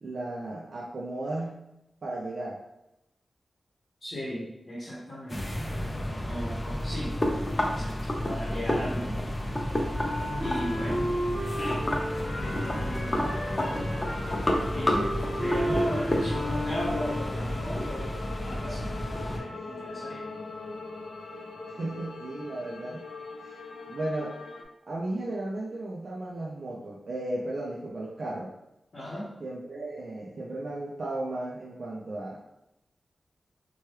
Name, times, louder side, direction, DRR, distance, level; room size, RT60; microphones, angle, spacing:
voice 1, 0.0-1.6 2.0-2.6 10.5-10.8 19.4-19.7 21.7-23.0 23.4-23.6 23.9-24.4 24.9-28.5 29.4-32.4, right 2 dB, 50° right, -3 dB, 0.3 m, -35 dB
voice 2, 4.0-5.5 6.2-7.2 7.6-9.2 10.4-11.2 12.4-13.3 14.7-15.1 15.4-18.1 18.4-20.3 28.9-29.3, equal, 45° left, -7 dB, 0.8 m, -36 dB
sound 1, 5.3-19.4, left 1 dB, 20° left, 0.4 m, -30 dB
Wind instrument woodwind instrument, 9.9-17.5, equal, 5° left, 0.8 m, -34 dB
sound 2, 12.4-24.6, left 3 dB, 90° left, 0.4 m, -40 dB
2.9 x 2.2 x 3.1 m, 0.89 s
wide cardioid pair, 145°, 0 cm